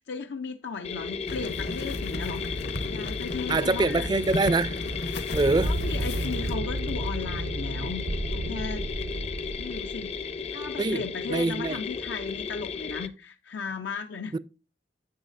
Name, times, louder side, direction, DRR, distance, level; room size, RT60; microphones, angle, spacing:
voice 1, 0.0-4.1 5.6-8.9 9.6-14.4, left 5 dB, 85° left, 0.5 m, -36 dB
sound 1, 0.8-13.1, left 6 dB, 35° left, 0.5 m, -35 dB
sound 2, 1.3-6.5, left 1 dB, 65° left, 0.9 m, -34 dB
voice 2, 3.5-4.8 5.3-5.7 10.8-11.8 14.3-14.4, right 3 dB, 25° right, 0.3 m, -25 dB
sound 3, 5.5-10.2, right 1 dB, 85° right, 0.8 m, -32 dB
10.0 x 7.2 x 2.5 m
head